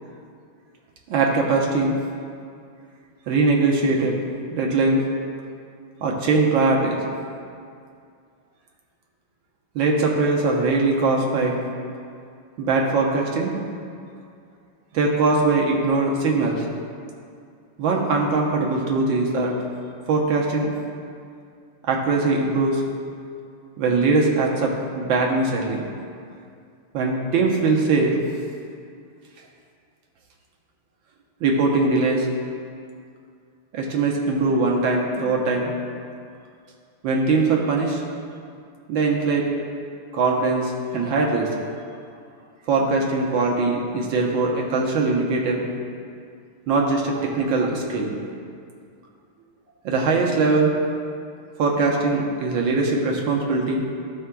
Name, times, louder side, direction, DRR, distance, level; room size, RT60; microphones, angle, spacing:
voice 1, 1.1-1.9 3.3-4.2 4.5-5.0 6.0-7.0 9.7-11.6 12.6-13.6 14.9-16.7 17.8-19.5 20.1-20.7 21.9-22.8 23.8-25.8 26.9-28.2 31.4-32.3 33.7-35.7 37.0-38.0 38.9-39.5 40.1-41.5 42.7-45.6 46.7-48.2 49.8-50.7 51.6-53.8, right 3 dB, 70° right, -1 dB, 1.5 m, -21 dB
13.5 x 4.7 x 2.2 m, 2.3 s
omnidirectional pair, 2.3 m